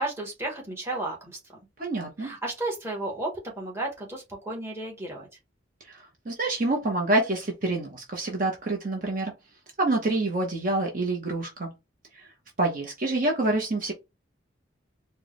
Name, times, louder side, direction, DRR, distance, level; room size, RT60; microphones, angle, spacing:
voice 1, 0.0-1.4 2.2-3.3 3.6-5.3, right 2 dB, 15° right, 1.2 m, -33 dB
voice 2, 1.8-2.3 5.8-9.3 9.8-11.7 12.1-12.3 12.6-13.9, right 2 dB, 45° right, 0.8 m, -27 dB
4.4 x 2.2 x 3.1 m
head